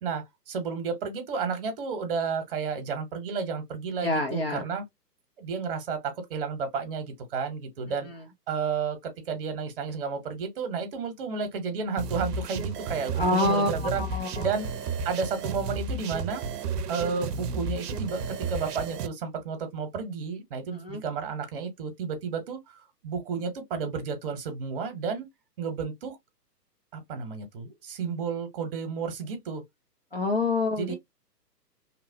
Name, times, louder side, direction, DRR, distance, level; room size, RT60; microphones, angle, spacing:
voice 1, 0.0-4.8 5.4-8.1 8.5-14.0 14.4-16.4 16.9-25.3 25.6-26.2 26.9-29.6 30.8-31.0, right 5 dB, 35° right, 0.9 m, -32 dB
voice 2, 4.0-4.6 13.1-14.5 20.8-21.0 30.1-30.9, left 2 dB, 40° left, 0.4 m, -27 dB
sound 1, 12.0-19.1, right 4 dB, 70° right, 0.6 m, -33 dB
2.9 x 2.0 x 2.6 m
figure-of-eight pair, 130°, 49 cm